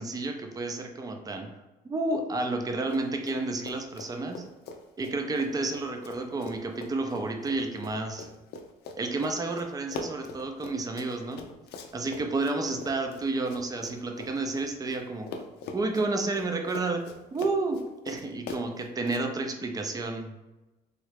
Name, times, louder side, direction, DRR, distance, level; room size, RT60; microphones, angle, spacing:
voice 1, 0.0-1.5 1.8-4.5 5.0-8.3 9.0-11.5 11.9-15.3 15.7-17.8 18.0-20.3, right 3 dB, 20° right, 4 dB, 0.5 m, -31 dB
Run, 2.8-3.4 3.6-15.0 15.3-19.2, left 4 dB, 75° left, 0.5 m, -42 dB
3.1 x 2.3 x 3.3 m, 1.1 s
cardioid pair, 110°, 17 cm